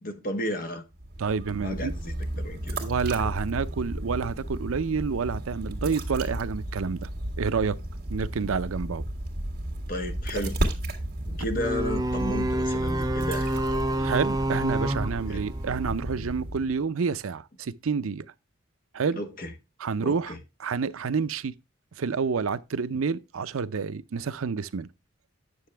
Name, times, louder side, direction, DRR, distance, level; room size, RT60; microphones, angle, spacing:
voice 1, 0.0-0.8 1.6-2.8 9.9-10.6 11.2-13.8 15.3-15.4 19.2-19.5 20.0-20.4, left 1 dB, 40° left, 1.3 m, -33 dB
sound 1, 0.9-16.8, right 1 dB, 45° right, 1.9 m, -33 dB
voice 2, 1.2-1.9 2.8-7.1 7.4-7.8 8.1-9.0 13.9-18.3 18.9-19.2 19.8-20.3 20.6-21.5 22.0-24.9, right 5 dB, 80° right, 0.5 m, -28 dB
sound 2, 11.6-16.0, right 1 dB, 15° right, 0.6 m, -28 dB
9.4 x 6.7 x 3.3 m
head